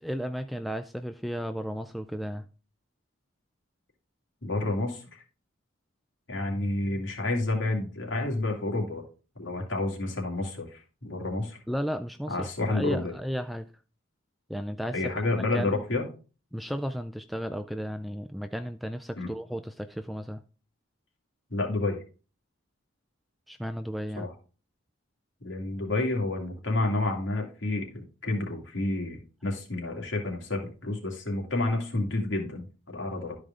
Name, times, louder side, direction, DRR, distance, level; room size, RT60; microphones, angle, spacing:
voice 1, 0.0-2.5 11.7-13.7 14.5-15.8 16.5-20.4 23.5-24.3, equal, ahead, 0.3 m, -34 dB
voice 2, 4.4-5.2 6.3-9.0 9.4-11.6 12.3-13.1 14.9-16.1 19.2-19.3 21.5-22.0 24.2-24.3 25.4-33.4, left 2 dB, 65° left, 2.5 m, -30 dB
12.5 x 4.9 x 3.7 m
head